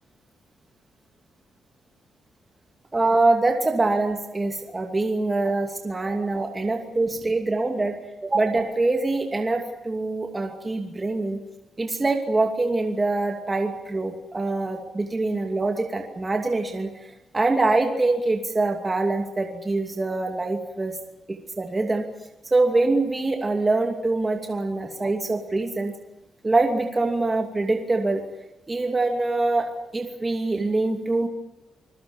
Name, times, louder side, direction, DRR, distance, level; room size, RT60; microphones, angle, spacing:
voice 1, 2.9-7.9 8.2-11.4 11.8-21.0 21.3-22.0 22.5-25.9 26.4-28.2 28.7-29.7 29.9-31.3, right 2 dB, 20° right, 3 dB, 2.7 m, -24 dB
27.0 x 21.0 x 7.2 m, 0.96 s
wide cardioid pair, 145°, 0 cm